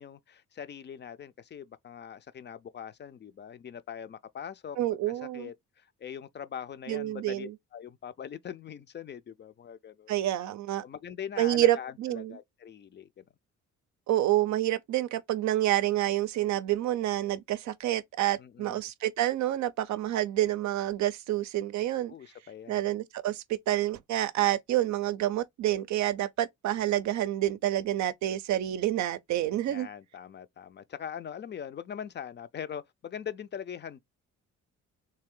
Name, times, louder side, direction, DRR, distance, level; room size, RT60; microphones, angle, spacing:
voice 1, 0.0-10.1 10.8-13.2 18.4-18.8 22.1-22.8 29.7-34.0, left 8 dB, 35° left, 0.4 m, -42 dB
voice 2, 4.8-5.5 6.9-7.5 10.1-10.8 11.4-12.4 14.1-22.1 22.7-29.9, right 14 dB, 70° right, 0.5 m, -28 dB
3.3 x 2.7 x 3.6 m
cardioid pair, 90°, 30 cm